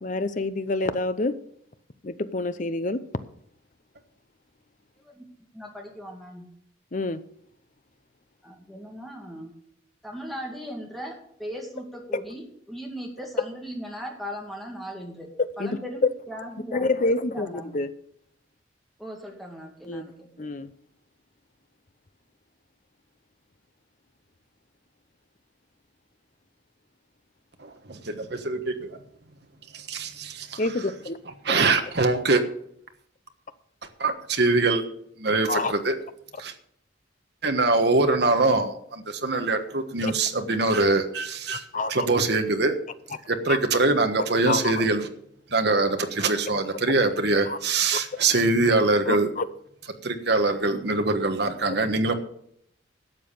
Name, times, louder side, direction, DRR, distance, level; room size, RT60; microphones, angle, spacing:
voice 1, 0.0-1.4 2.0-3.0 6.9-7.2 15.4-15.8 16.7-17.9 19.9-20.0 20.4-20.7 30.6-31.2 35.5-35.7 40.0-40.1 41.5-42.1 43.5-43.6 44.5-44.9 47.5-47.6 47.9-48.0 49.1-49.4, left 2 dB, 40° left, 13 dB, 0.7 m, -27 dB
voice 2, 5.5-6.5 8.4-9.5 10.0-15.3 15.6-16.9 17.2-17.7 19.0-20.5, equal, ahead, 0 dB, 2.3 m, -38 dB
voice 3, 27.6-29.0 29.7-30.1 31.4-32.4 34.0-34.8 35.2-36.0 36.4-36.5 37.4-41.6 41.9-42.8 43.3-45.1 45.5-49.3 50.0-52.1, right 3 dB, 55° right, 6 dB, 1.3 m, -23 dB
12.0 x 7.4 x 6.7 m, 0.68 s
head